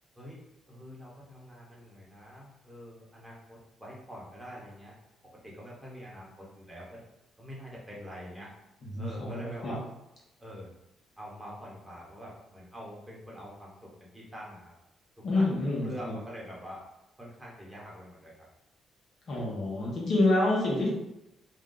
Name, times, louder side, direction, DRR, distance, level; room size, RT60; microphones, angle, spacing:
voice 1, 0.7-5.0 5.4-7.0 7.4-8.5 9.0-9.8 10.4-10.8 11.2-14.7 15.2-15.5 15.8-16.8 17.2-18.5, equal, 10° right, -4 dB, 1.0 m, -45 dB
voice 2, 8.9-9.8 15.2-15.9 19.3-20.9, left 2 dB, 55° left, -4 dB, 1.0 m, -27 dB
2.6 x 2.2 x 3.8 m, 0.88 s
cardioid pair, 90°, 0 cm